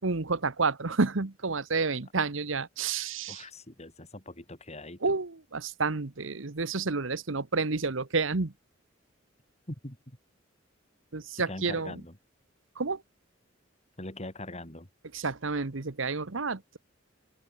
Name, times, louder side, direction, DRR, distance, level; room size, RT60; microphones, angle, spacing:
voice 1, 0.0-3.4 5.0-8.5 11.1-11.9 12.8-13.0 15.1-16.8, right 4 dB, 75° right, 1.2 m, -30 dB
voice 2, 3.3-5.2 9.7-10.2 11.4-12.2 14.0-14.9, left 1 dB, 35° left, 5.7 m, -42 dB
open air
head